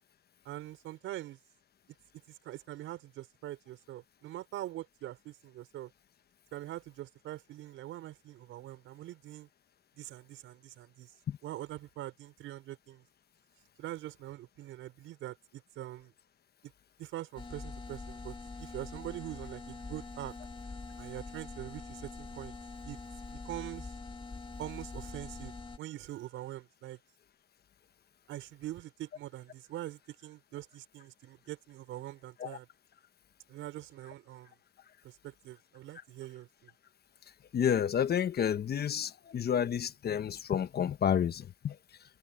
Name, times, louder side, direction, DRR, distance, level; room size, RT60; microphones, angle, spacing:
voice 1, 0.5-1.4 2.3-5.9 6.5-9.5 10.0-11.1 11.4-13.0 13.8-16.1 16.6-16.7 17.0-20.4 21.0-22.5 22.8-23.0 23.3-23.9 24.6-27.0 28.3-32.7 33.5-34.5 35.0-36.7, right 14 dB, 90° right, 5.4 m, -43 dB
sound 1, 17.4-25.8, left 3 dB, 25° left, 2.5 m, -44 dB
voice 2, 37.5-41.8, left 8 dB, 55° left, 1.2 m, -30 dB
cardioid pair, 90°, 20 cm